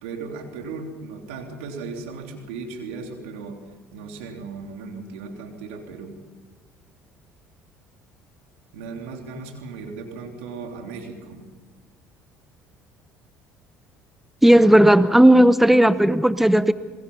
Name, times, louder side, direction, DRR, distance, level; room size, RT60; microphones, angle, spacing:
voice 1, 0.0-3.6 3.9-6.2 8.7-11.4, right 4 dB, 90° right, 3 dB, 3.5 m, -36 dB
voice 2, 14.4-16.7, right 1 dB, 5° right, 14 dB, 0.9 m, -14 dB
28.0 x 21.5 x 5.6 m, 1.4 s
supercardioid pair, 75°, 6 cm